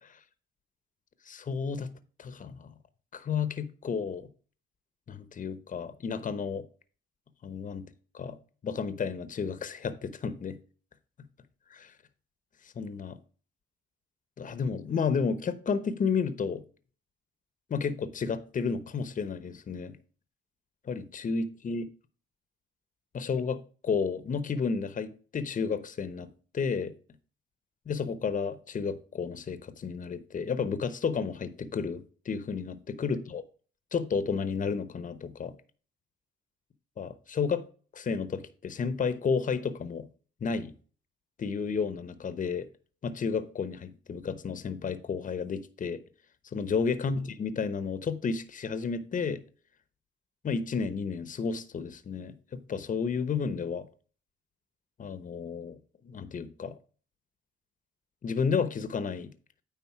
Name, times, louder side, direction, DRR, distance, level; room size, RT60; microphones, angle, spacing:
voice 1, 1.3-1.9 2.2-2.7 3.1-4.3 5.1-6.7 7.4-7.8 8.1-8.4 8.6-10.6 11.7-11.9 12.8-13.2 14.4-16.6 17.7-20.0 20.9-21.8 23.1-26.3 26.5-26.9 27.9-33.4 33.9-35.5 37.0-37.6 37.9-40.1 40.4-40.7 41.4-42.7 43.0-46.0 46.5-49.4 50.4-53.9 55.0-55.8 56.0-56.7 58.2-59.3, left 5 dB, 40° left, 1.0 m, -32 dB
9.6 x 3.9 x 6.0 m
cardioid pair, 90°, 20 cm